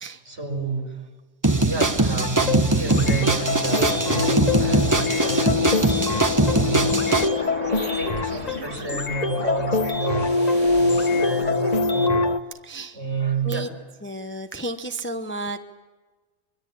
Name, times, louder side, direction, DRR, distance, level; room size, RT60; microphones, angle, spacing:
voice 1, 0.2-0.9 1.6-5.7 6.3-7.0 7.9-10.4 10.7-12.2 12.9-13.7, right 4 dB, 65° right, 1 dB, 5.6 m, -29 dB
sound 1, 1.4-7.3, right 2 dB, 15° right, 1.1 m, -21 dB
sound 2, 2.2-12.4, left 4 dB, 35° left, 1.2 m, -24 dB
sound 3, 6.8-11.8, right 2 dB, 80° right, 2.6 m, -37 dB
voice 2, 12.6-13.0 13.4-13.7 14.0-15.6, right 1 dB, 10° left, 7 dB, 0.8 m, -32 dB
24.5 x 23.5 x 8.6 m, 1.3 s
omnidirectional pair, 1.2 m